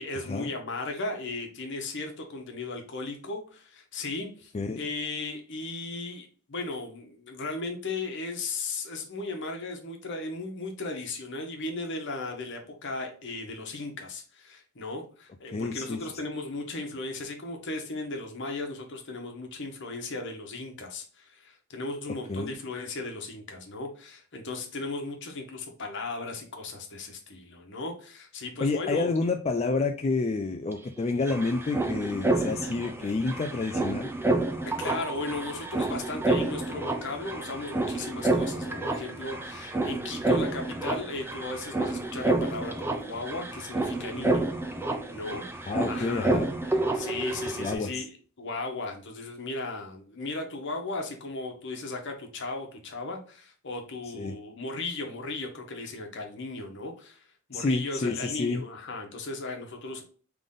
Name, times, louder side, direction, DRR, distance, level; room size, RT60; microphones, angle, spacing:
voice 1, 0.0-29.1 34.8-44.5 44.8-46.4 46.9-60.0, left 3 dB, 60° left, 3 dB, 1.1 m, -36 dB
voice 2, 15.5-16.0 22.3-22.5 28.6-34.1 45.7-46.5 47.6-48.0 54.1-54.3 57.5-58.6, left 3 dB, 30° left, 5 dB, 0.4 m, -29 dB
sound 1, 30.7-30.8 31.0-47.7, right 2 dB, 10° right, 0.6 m, -29 dB
3.8 x 3.4 x 3.7 m, 0.41 s
head